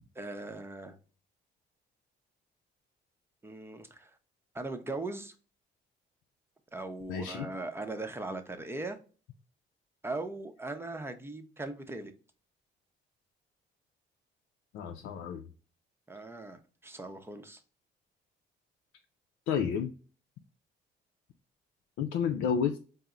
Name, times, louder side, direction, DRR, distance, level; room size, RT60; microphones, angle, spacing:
voice 1, 0.2-1.0 3.4-4.2 4.5-5.3 6.7-9.0 10.0-12.1 16.1-17.6, right 2 dB, 10° right, 0.6 m, -39 dB
voice 2, 7.1-7.5 14.7-15.5 19.5-19.9 22.0-22.8, left 7 dB, 90° left, 0.4 m, -31 dB
4.3 x 2.0 x 3.6 m
cardioid pair, 90°, 20 cm